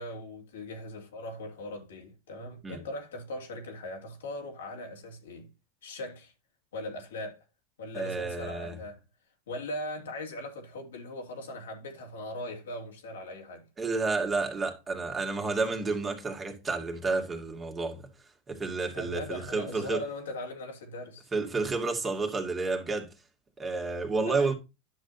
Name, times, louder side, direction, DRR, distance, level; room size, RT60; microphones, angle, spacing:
voice 1, 0.0-5.5 5.8-6.3 6.7-7.4 7.8-9.0 9.5-13.7 18.9-21.3 24.1-24.5, left 1 dB, 85° left, 2.5 m, -39 dB
voice 2, 7.9-8.8 13.8-18.1 18.5-20.0 21.3-23.1 23.6-24.5, right 3 dB, 20° right, 2.2 m, -30 dB
10.5 x 6.3 x 2.7 m
hypercardioid pair, 105°, 0 cm